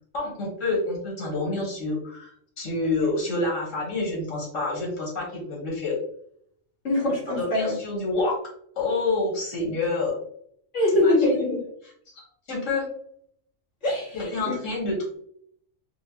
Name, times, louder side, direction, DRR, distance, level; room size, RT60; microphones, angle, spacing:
voice 1, 0.1-5.9 7.4-8.4 8.8-10.1 11.0-11.1 12.1-12.9 14.1-15.2, left 2 dB, 85° left, -2 dB, 1.9 m, -28 dB
voice 2, 6.8-7.8 10.7-11.6 13.8-14.3, left 1 dB, 70° left, -4 dB, 2.1 m, -23 dB
4.5 x 2.6 x 3.0 m, 0.66 s
omnidirectional pair, 1.3 m